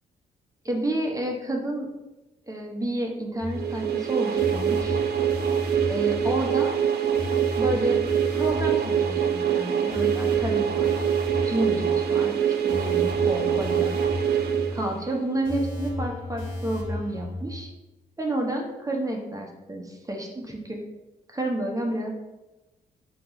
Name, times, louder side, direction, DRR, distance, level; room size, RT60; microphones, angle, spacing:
voice 1, 0.6-1.9 2.5-5.0 5.9-6.8 7.6-8.0 8.3-11.0 11.4-13.9 14.7-17.7 18.2-20.8 21.3-22.1, right 1 dB, 15° right, 1 dB, 0.9 m, -30 dB
sound 1, 3.4-17.4, left 1 dB, 45° left, 1.4 m, -34 dB
sound 2, 3.5-15.3, right 9 dB, 60° right, 0.5 m, -24 dB
3.4 x 3.0 x 3.8 m, 1.0 s
hypercardioid pair, 50°, 19 cm